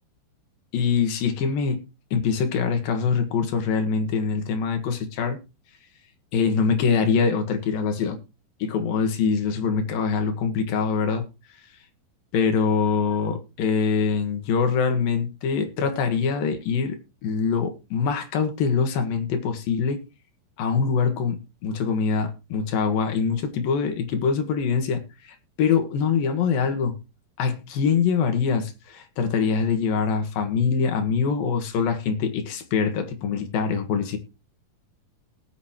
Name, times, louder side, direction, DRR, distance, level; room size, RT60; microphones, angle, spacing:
voice 1, 0.7-1.8 2.1-5.4 6.3-8.2 8.6-11.2 12.3-17.0 17.2-20.0 20.6-27.0 27.4-34.2, left 5 dB, 65° left, 3.2 m, -24 dB
19.0 x 8.4 x 3.0 m
omnidirectional pair, 4.7 m